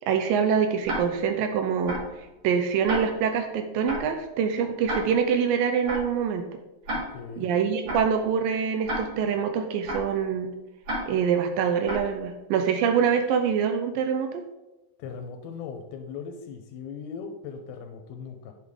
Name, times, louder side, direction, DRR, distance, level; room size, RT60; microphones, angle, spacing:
voice 1, 0.0-6.5 7.4-10.5 11.1-14.4, right 7 dB, 80° right, 6 dB, 2.2 m, -25 dB
Tick-tock, 0.8-1.3 1.9-2.2 2.9-3.3 3.9-4.2 4.9-5.3 5.9-6.2 6.9-7.3 7.9-8.2 8.9-9.3 9.9-10.2 10.8-11.3 11.8-12.2, equal, 50° right, 3.1 m, -33 dB
voice 2, 7.1-7.5 15.0-18.5, left 6 dB, 90° left, 4 dB, 2.6 m, -38 dB
8.6 x 6.5 x 3.6 m, 0.96 s
omnidirectional pair, 4.3 m